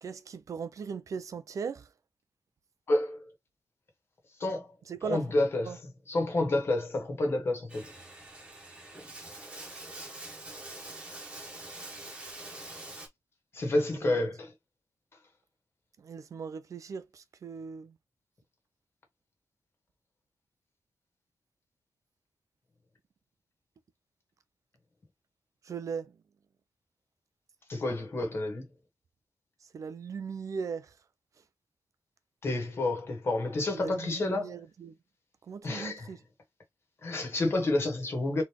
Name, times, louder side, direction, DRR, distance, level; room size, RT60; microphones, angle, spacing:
voice 1, 0.0-1.9 4.9-5.2 5.7-5.8 14.0-14.2 16.0-17.9 25.7-26.1 29.7-30.9 33.7-34.9 35.5-36.2, right 6 dB, 60° right, 0.6 m, -38 dB
voice 2, 2.9-3.3 4.4-4.7 5.0-7.8 13.5-14.5 27.7-28.7 32.4-34.6 35.6-36.1 37.0-38.4, left 2 dB, 45° left, 1.7 m, -29 dB
Bathtub (filling or washing), 7.7-13.1, right 2 dB, 15° right, 1.4 m, -45 dB
4.0 x 3.4 x 3.1 m
wide cardioid pair, 165°, 6 cm